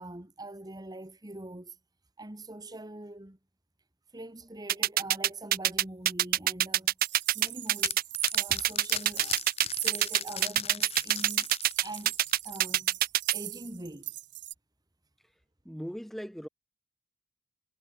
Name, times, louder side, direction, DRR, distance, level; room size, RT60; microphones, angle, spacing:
voice 1, 0.0-1.8 2.2-3.4 4.1-6.9 7.3-8.0 8.3-11.5 11.8-12.2 12.4-13.0 13.3-14.1, right 2 dB, 20° right, 1.6 m, -43 dB
sound 1, 4.7-13.3, right 13 dB, 50° right, 0.6 m, -24 dB
sound 2, 7.0-10.5 10.9-14.5, right 16 dB, 70° right, 4.1 m, -40 dB
sound 3, 7.1-12.6, left 9 dB, 35° left, 1.3 m, -39 dB
voice 2, 15.6-16.5, equal, ahead, 1.5 m, -39 dB
head